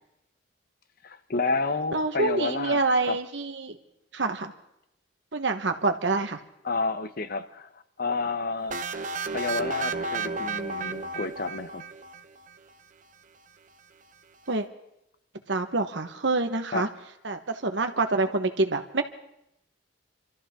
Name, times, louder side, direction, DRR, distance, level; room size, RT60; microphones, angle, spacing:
voice 1, 1.0-2.8 3.1-3.2 6.6-7.7 8.0-8.8 9.3-11.8 16.7-16.9, left 3 dB, 50° left, 1.0 m, -30 dB
voice 2, 1.9-3.8 4.1-4.5 5.3-6.4 14.5-14.6 15.5-16.9 17.2-19.0, right 3 dB, 70° right, 1.4 m, -26 dB
sound 1, 8.7-12.5, right 3 dB, 45° right, 0.8 m, -32 dB
27.5 x 13.5 x 3.7 m
head